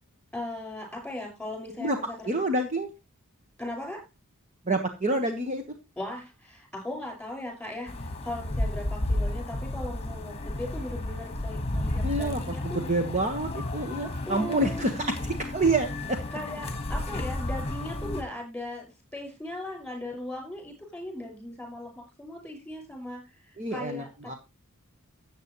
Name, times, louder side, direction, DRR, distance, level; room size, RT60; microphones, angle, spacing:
voice 1, 0.3-2.3 3.6-4.0 6.0-12.8 14.0-14.8 16.3-18.8 19.1-24.4, left 1 dB, 5° left, 1 dB, 5.5 m, -38 dB
voice 2, 2.3-2.9 4.7-5.6 12.0-16.2 23.6-24.4, right 2 dB, 30° right, 5 dB, 1.2 m, -28 dB
sound 1, 7.9-18.2, left 1 dB, 25° left, 1.4 m, -32 dB
14.0 x 8.4 x 3.0 m, 0.24 s
head